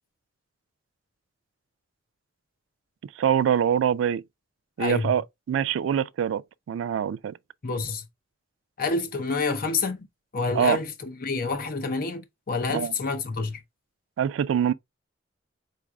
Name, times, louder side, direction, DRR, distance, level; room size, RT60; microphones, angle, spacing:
voice 1, 3.2-4.2 4.8-5.2 5.5-6.4 6.7-7.4 10.5-10.8 12.7-12.9 14.2-14.7, right 8 dB, 85° right, 0.3 m, -24 dB
voice 2, 4.8-5.1 7.6-8.0 8.8-10.1 10.3-13.6, left 4 dB, 50° left, 0.7 m, -28 dB
4.7 x 3.9 x 2.3 m
head